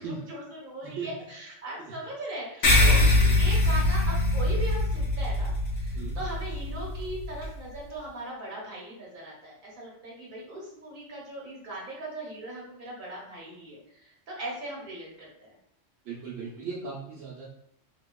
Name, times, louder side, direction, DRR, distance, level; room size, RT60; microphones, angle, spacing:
voice 1, 0.0-3.0 3.3-15.6, right 1 dB, 45° right, -3 dB, 1.1 m, -39 dB
sound 1, 2.6-7.5, left 2 dB, 65° left, 0.9 m, -23 dB
voice 2, 2.8-3.4 5.9-6.2 16.0-17.5, right 5 dB, 75° right, -5 dB, 1.0 m, -37 dB
2.8 x 2.8 x 2.2 m, 0.73 s
omnidirectional pair, 1.3 m